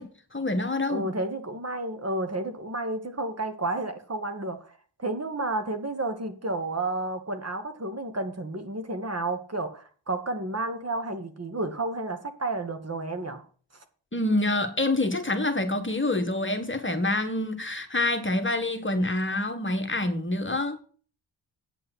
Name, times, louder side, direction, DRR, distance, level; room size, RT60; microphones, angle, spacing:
voice 1, 0.0-1.0 14.1-20.8, left 2 dB, 25° left, 1.7 m, -27 dB
voice 2, 0.9-4.7 5.0-13.4, right 2 dB, 30° right, 2.0 m, -31 dB
9.2 x 5.6 x 8.1 m
supercardioid pair, 50°, 47 cm